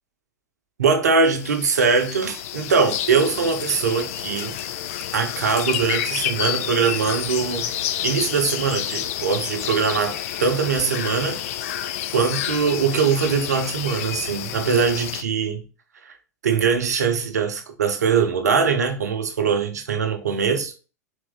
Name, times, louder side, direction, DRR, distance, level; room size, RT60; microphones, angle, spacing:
voice 1, 0.8-4.6 5.1-7.7 8.0-11.4 12.1-15.6 16.0-16.1 16.4-20.7, right 5 dB, 70° right, 0.8 m, -22 dB
sound 1, 1.2-15.2, left 11 dB, 55° left, 0.4 m, -29 dB
4.0 x 3.0 x 3.8 m
figure-of-eight pair, 90°, 9 cm